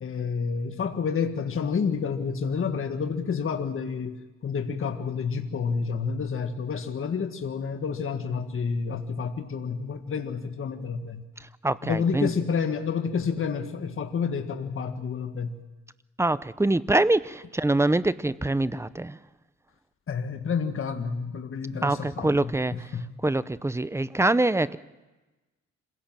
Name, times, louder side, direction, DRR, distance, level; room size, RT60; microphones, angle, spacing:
voice 1, 0.0-11.2 11.8-15.6 20.1-23.0, left 6 dB, 45° left, 5 dB, 1.8 m, -29 dB
voice 2, 11.6-12.3 16.2-19.2 21.8-22.7 23.2-24.8, right 2 dB, 10° right, 16 dB, 0.7 m, -24 dB
26.0 x 17.0 x 7.5 m, 1.1 s
cardioid pair, 90°, 30 cm